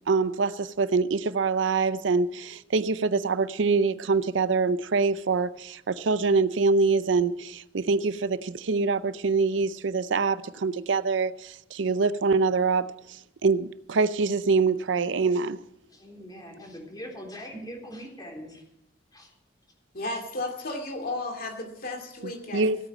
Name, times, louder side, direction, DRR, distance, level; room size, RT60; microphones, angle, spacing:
voice 1, 0.1-15.6 22.5-22.8, right 4 dB, 75° right, 0.6 m, -25 dB
voice 2, 15.9-18.6 19.1-19.3, equal, 20° left, 3.7 m, -41 dB
voice 3, 19.9-22.7, left 2 dB, 50° left, 2.4 m, -34 dB
16.0 x 8.9 x 7.4 m
head